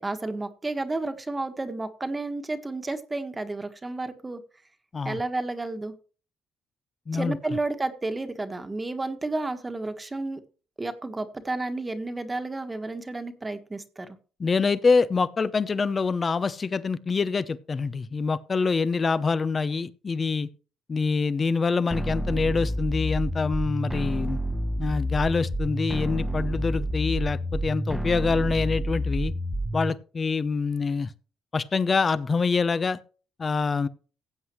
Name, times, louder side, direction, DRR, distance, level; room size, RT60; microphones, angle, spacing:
voice 1, 0.0-4.4 5.0-5.9 7.1-10.4 10.8-14.2, right 2 dB, 20° right, 1.5 m, -31 dB
voice 2, 7.1-7.4 14.4-20.5 20.9-24.4 24.8-29.3 29.7-31.1 31.5-33.0 33.4-33.9, left 4 dB, 35° left, 0.8 m, -25 dB
sound 1, 21.9-29.9, equal, 5° right, 1.1 m, -29 dB
15.5 x 8.0 x 3.1 m
supercardioid pair, 70°, 0 cm